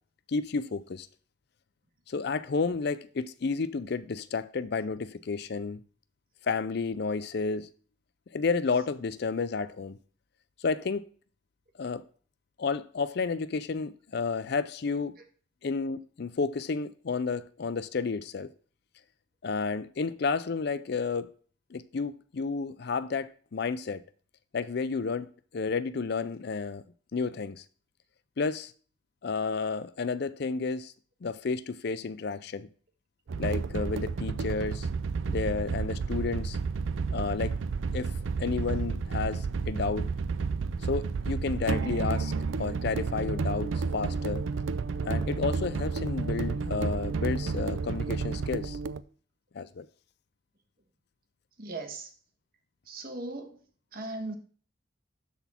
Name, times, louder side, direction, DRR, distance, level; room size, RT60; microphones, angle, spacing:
voice 1, 0.3-1.1 2.1-5.8 6.4-7.7 8.3-10.0 10.6-11.1 11.8-12.0 12.6-15.1 15.6-18.5 19.4-21.3 21.7-24.0 24.5-26.8 27.1-27.6 28.4-28.7 29.2-30.9 31.2-32.7 33.4-34.9 35.3-36.6 37.1-37.6 37.9-38.1 38.4-40.1 40.8-42.3 42.6-44.5 45.0-48.8 49.5-49.9, left 4 dB, 55° left, 0.5 m, -31 dB
sound 1, 33.3-49.0, right 4 dB, 75° right, 0.4 m, -31 dB
voice 2, 51.6-52.1 52.9-53.6 53.9-54.3, right 2 dB, 50° right, 1.6 m, -38 dB
12.5 x 4.1 x 4.4 m
head